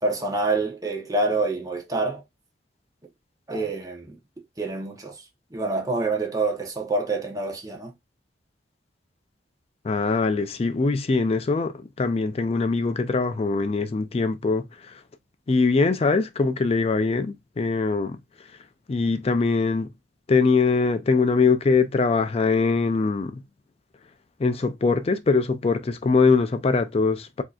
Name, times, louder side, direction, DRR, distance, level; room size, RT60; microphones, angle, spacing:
voice 1, 0.0-2.2 3.5-4.2 4.6-5.2 5.5-7.9, right 3 dB, 20° right, 0.9 m, -26 dB
voice 2, 9.8-15.0 15.5-18.2 18.9-19.9 20.3-23.4 24.4-27.4, left 4 dB, 35° left, 0.4 m, -22 dB
4.4 x 2.8 x 2.4 m
head